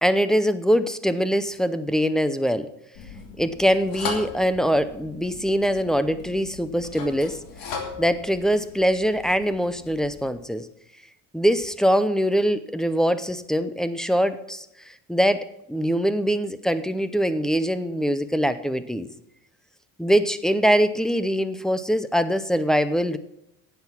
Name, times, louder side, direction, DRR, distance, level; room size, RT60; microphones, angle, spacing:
voice 1, 0.0-2.7 3.4-7.4 8.0-10.7 11.3-14.7 15.1-19.1 20.0-23.2, equal, ahead, 13 dB, 0.6 m, -23 dB
sound 1, 2.9-10.3, left 5 dB, 90° left, 2.8 m, -38 dB
10.5 x 8.0 x 7.2 m, 0.81 s
cardioid pair, 135°, 33 cm